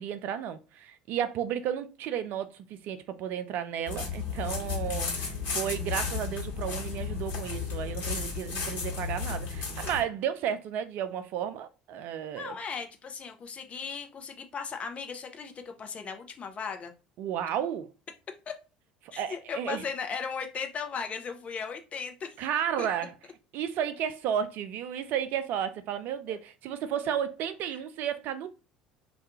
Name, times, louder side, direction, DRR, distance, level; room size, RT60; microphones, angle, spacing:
voice 1, 0.0-12.6 17.2-17.9 19.0-19.8 22.4-23.1 23.5-28.5, right 9 dB, 50° right, 0.3 m, -33 dB
sound 1, 3.9-10.0, left 5 dB, 45° left, 1.1 m, -33 dB
voice 2, 12.4-16.9 18.5-18.6 19.1-22.4 22.8-22.9 26.3-26.4, left 6 dB, 30° left, 0.5 m, -37 dB
2.2 x 2.2 x 2.8 m
figure-of-eight pair, 60°, 4 cm